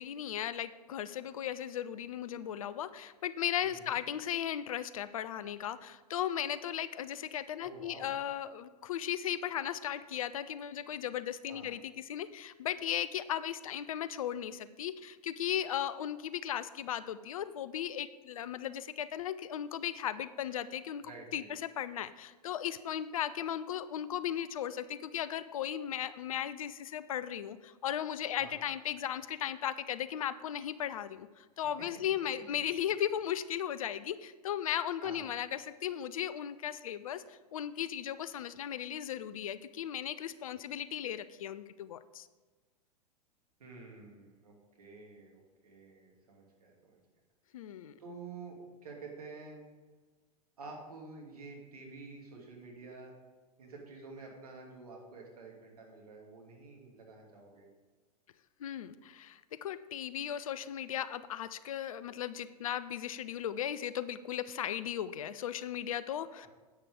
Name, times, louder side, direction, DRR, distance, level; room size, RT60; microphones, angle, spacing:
voice 1, 0.0-42.3 47.5-47.9 58.6-66.5, left 10 dB, 55° left, 15 dB, 0.5 m, -36 dB
voice 2, 3.6-4.0 7.6-8.1 11.5-11.7 21.0-21.5 28.4-28.5 35.0-35.2 43.6-47.0 48.0-49.6 50.6-53.1 53.6-57.7, right 3 dB, 65° right, -1 dB, 2.4 m, -49 dB
10.5 x 8.4 x 3.6 m, 1.3 s
figure-of-eight pair, 95°, 21 cm